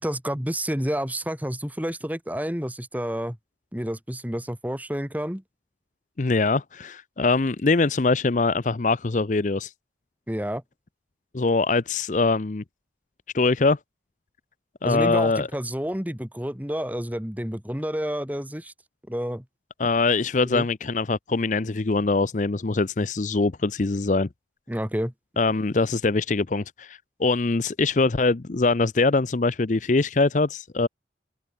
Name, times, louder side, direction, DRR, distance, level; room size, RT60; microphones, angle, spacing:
voice 1, 0.0-3.4 3.7-5.4 10.3-10.6 14.8-18.7 19.1-19.4 20.4-20.7 24.7-25.1, equal, 10° right, 2.0 m, -29 dB
voice 2, 6.2-9.7 11.3-12.6 13.3-13.8 14.8-15.5 19.8-24.3 25.4-30.9, left 3 dB, 40° left, 0.6 m, -23 dB
open air
head